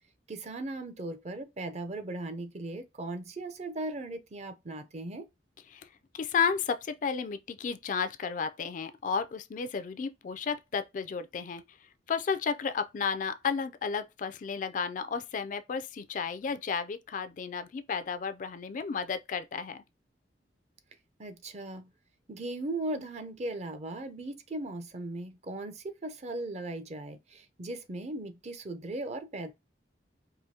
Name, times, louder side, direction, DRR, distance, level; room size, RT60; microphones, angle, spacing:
voice 1, 0.3-5.3 21.2-21.9 22.3-29.5, right 2 dB, 40° right, 0.5 m, -38 dB
voice 2, 5.7-11.8 12.1-19.8, left 6 dB, 45° left, 0.3 m, -33 dB
4.9 x 2.6 x 2.7 m
head